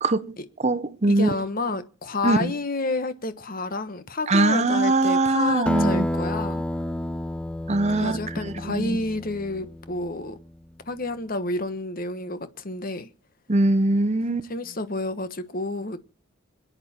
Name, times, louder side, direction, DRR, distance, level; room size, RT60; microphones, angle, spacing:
voice 1, 0.0-0.4 0.6-1.3 2.2-2.5 4.3-6.1 7.7-8.2 8.4-9.0 13.5-14.5, right 2 dB, 35° right, 0.8 m, -22 dB
voice 2, 1.1-6.6 7.9-10.4 10.9-13.1 14.5-16.0, left 2 dB, 45° left, 1.3 m, -29 dB
Acoustic guitar, 5.7-10.5, equal, 5° left, 0.7 m, -30 dB
27.0 x 9.6 x 4.4 m
head